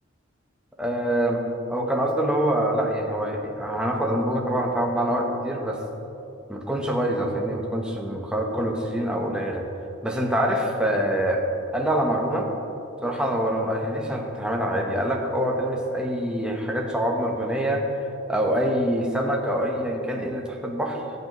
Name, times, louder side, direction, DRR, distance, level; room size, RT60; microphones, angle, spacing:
voice 1, 0.8-1.4 1.7-5.8 6.5-9.6 10.0-11.4 11.7-12.5 13.0-17.8 18.3-21.0, right 1 dB, 5° right, -1 dB, 1.0 m, -25 dB
19.0 x 8.2 x 3.1 m, 2.9 s
head